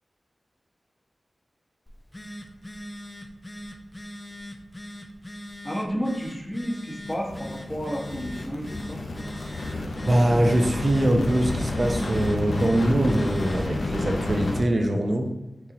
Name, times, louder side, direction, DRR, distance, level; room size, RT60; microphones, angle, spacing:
Telephone, 1.9-13.8, equal, 25° left, 0.5 m, -41 dB
voice 1, 5.6-9.0, equal, 10° left, -3 dB, 1.1 m, -31 dB
sound 1, 7.1-14.6, left 2 dB, 75° left, 0.6 m, -30 dB
voice 2, 9.4-15.3, right 1 dB, 50° right, 3 dB, 0.7 m, -23 dB
6.0 x 2.4 x 3.0 m, 0.90 s
cardioid pair, 40°, 0 cm